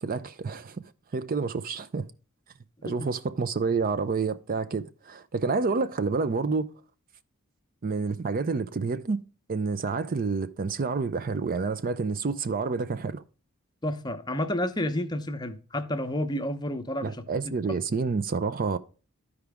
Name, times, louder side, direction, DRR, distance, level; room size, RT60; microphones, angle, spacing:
voice 1, 0.0-0.8 1.1-2.1 2.8-6.7 7.8-9.2 9.5-13.2 17.0-18.8, right 4 dB, 40° right, 0.5 m, -28 dB
voice 2, 13.8-17.2, left 1 dB, 20° left, 0.8 m, -30 dB
12.5 x 4.9 x 3.5 m
head